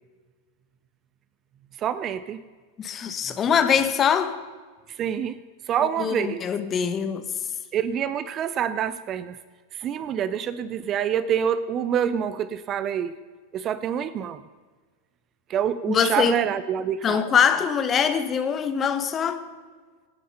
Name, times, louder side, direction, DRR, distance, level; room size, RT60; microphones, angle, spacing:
voice 1, 1.8-2.4 5.0-5.4 5.7-6.4 7.7-9.4 9.7-13.1 13.5-14.4 15.5-17.2, right 9 dB, 30° right, 0.7 m, -26 dB
voice 2, 2.8-4.4 6.0-7.2 15.9-16.3 17.0-19.5, left 7 dB, 25° left, 1.5 m, -23 dB
26.5 x 9.3 x 5.5 m
figure-of-eight pair, 90°, 0 cm